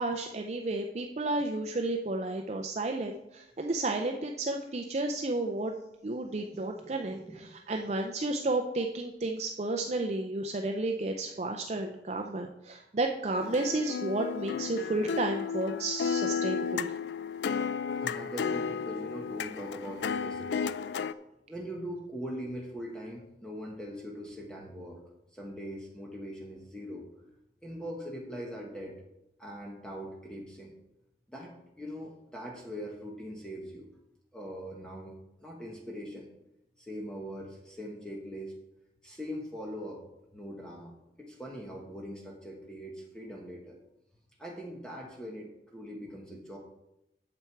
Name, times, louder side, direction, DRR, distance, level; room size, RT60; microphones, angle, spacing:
voice 1, 0.0-5.7 6.0-16.9, right 2 dB, 40° right, 3 dB, 0.5 m, -32 dB
voice 2, 6.8-7.4 18.0-20.7 21.5-25.0 25.3-27.0 27.6-28.9 29.4-30.7 31.3-33.9 34.3-36.3 36.8-38.5 39.0-40.0 40.3-43.8 44.4-46.6, equal, 5° left, -2 dB, 1.1 m, -41 dB
sound 1, 13.4-21.1, left 6 dB, 75° left, 0.4 m, -33 dB
8.7 x 7.1 x 4.6 m, 0.88 s
head